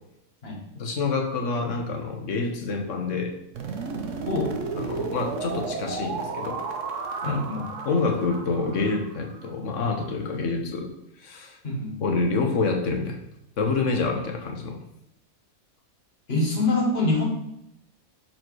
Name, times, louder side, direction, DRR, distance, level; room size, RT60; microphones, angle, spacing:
voice 1, 0.7-3.3 4.8-6.6 7.2-7.4 7.8-10.9 11.2-11.6 12.0-13.2 13.6-14.8, left 4 dB, 65° left, 4 dB, 1.3 m, -27 dB
sound 1, 3.5-9.5, right 4 dB, 65° right, 1.1 m, -33 dB
voice 2, 7.2-7.7 11.6-12.0 16.3-17.2, left 2 dB, 45° left, -1 dB, 1.8 m, -25 dB
6.5 x 4.4 x 4.6 m, 0.84 s
omnidirectional pair, 1.4 m